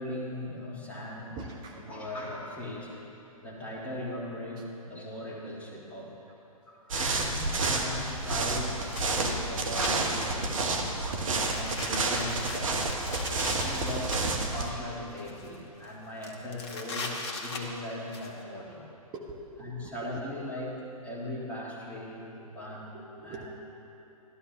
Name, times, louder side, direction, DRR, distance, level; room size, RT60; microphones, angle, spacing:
voice 1, 0.0-1.4 1.7-3.1 3.4-6.1 6.7-10.9 11.2-12.8 13.5-14.2 14.5-18.8 19.6-20.8 21.0-22.2 22.5-23.0 23.2-23.5, left 1 dB, 5° left, -5 dB, 1.8 m, -39 dB
voice 2, 1.4-1.8 9.0-9.4 10.6-10.7 14.7-14.8 15.1-15.3 19.1-20.4 22.9-23.5, right 3 dB, 25° right, 0 dB, 0.8 m, -45 dB
sound 1, 6.9-14.7, right 3 dB, 60° right, 1.1 m, -30 dB
sound 2, 8.7-9.9 10.4-10.7 11.3-14.2 14.9-15.6 15.8-15.9 16.2-18.3, left 3 dB, 45° left, 1.2 m, -39 dB
12.5 x 12.0 x 3.0 m, 3.0 s
figure-of-eight pair, 115°, 19 cm